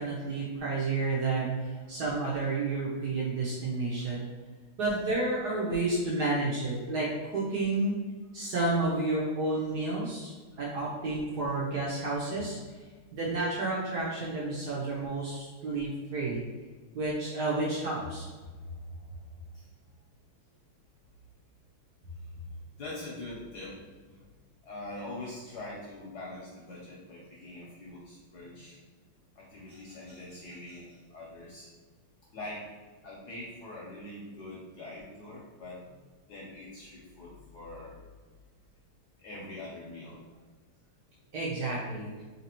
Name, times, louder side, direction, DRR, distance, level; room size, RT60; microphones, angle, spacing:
voice 1, 0.0-4.3 4.8-8.0 8.3-10.3 10.6-12.6 13.1-16.4 16.9-18.3 41.3-42.1, right 2 dB, 65° right, -5 dB, 1.1 m, -30 dB
voice 2, 18.7-19.2 19.5-19.7 22.7-24.2 24.6-28.8 29.4-31.7 32.3-32.7 33.0-36.0 36.3-38.0 39.2-40.4, left 2 dB, 65° left, -4 dB, 1.0 m, -44 dB
3.3 x 2.8 x 4.2 m, 1.4 s
omnidirectional pair, 2.4 m